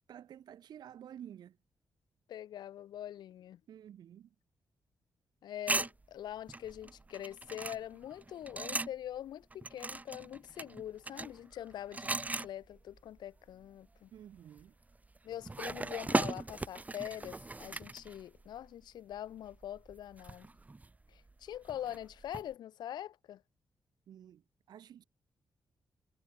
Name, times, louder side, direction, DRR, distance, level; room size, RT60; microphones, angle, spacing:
voice 1, 0.1-1.6 3.7-4.3 14.1-14.7 24.1-24.4 24.7-25.0, right 10 dB, 70° right, 0.5 m, -51 dB
voice 2, 2.3-3.6 5.4-14.1 15.2-20.5 21.1-23.4, left 11 dB, 85° left, 0.6 m, -44 dB
sound 1, 5.7-9.2 9.5-13.2 13.5-13.7 14.3-18.7 19.1-22.5, right 3 dB, 20° right, 0.8 m, -38 dB
cardioid pair, 75°, 7 cm